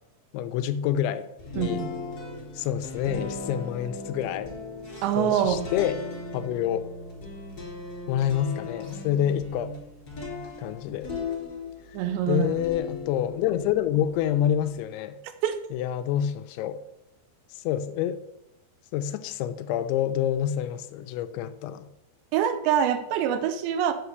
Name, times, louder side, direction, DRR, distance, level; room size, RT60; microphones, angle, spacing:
voice 1, 0.3-1.3 1.6-1.9 2.6-4.5 5.2-6.0 6.3-6.9 8.1-9.7 10.6-11.1 12.3-15.2 15.7-16.8 17.6-18.2 18.9-21.9, left 10 dB, 85° left, 3.0 m, -27 dB
sound 1, 1.4-12.0 12.4-14.8, left 4 dB, 25° left, 3.7 m, -38 dB
voice 2, 5.0-5.6 11.9-12.5 15.4-15.6 22.3-23.9, right 9 dB, 85° right, 2.9 m, -24 dB
8.8 x 7.1 x 7.9 m
omnidirectional pair, 5.2 m